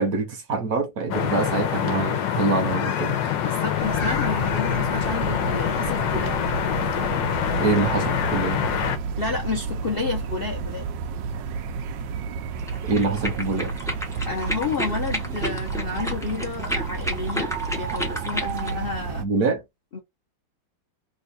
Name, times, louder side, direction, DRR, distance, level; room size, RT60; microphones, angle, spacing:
voice 1, 0.0-3.2 7.6-8.6 12.8-13.7 19.2-19.6, right 4 dB, 60° right, 1.1 m, -25 dB
sound 1, 1.1-9.0, left 9 dB, 90° left, 1.3 m, -25 dB
voice 2, 3.3-6.3 9.2-10.8 14.3-19.3 19.9-20.0, left 4 dB, 55° left, 0.6 m, -30 dB
sound 2, 3.8-19.2, right 5 dB, 85° right, 1.3 m, -31 dB
sound 3, 12.6-18.8, equal, 5° left, 0.3 m, -32 dB
3.5 x 2.3 x 3.8 m
omnidirectional pair, 1.9 m